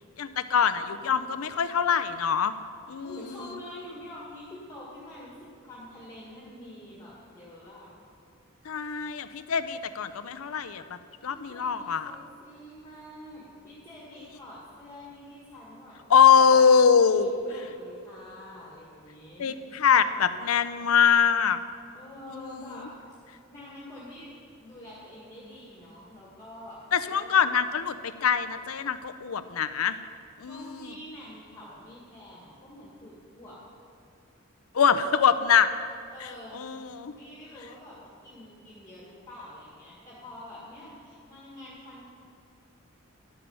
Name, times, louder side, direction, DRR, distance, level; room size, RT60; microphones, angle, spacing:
voice 1, 0.2-2.5 2.9-3.1 8.7-10.8 11.2-12.1 16.1-17.3 19.4-21.6 22.4-22.6 26.9-27.9 28.2-29.9 30.4-30.6 34.7-35.7 36.5-37.1, left 7 dB, 90° left, 12 dB, 0.6 m, -23 dB
voice 2, 3.0-7.9 11.3-16.3 17.0-19.6 21.9-22.9 23.5-24.3 24.6-27.5 30.4-33.6 36.1-36.7 37.1-42.1, left 1 dB, 15° left, -7 dB, 1.8 m, -46 dB
12.0 x 8.5 x 5.6 m, 2.3 s
head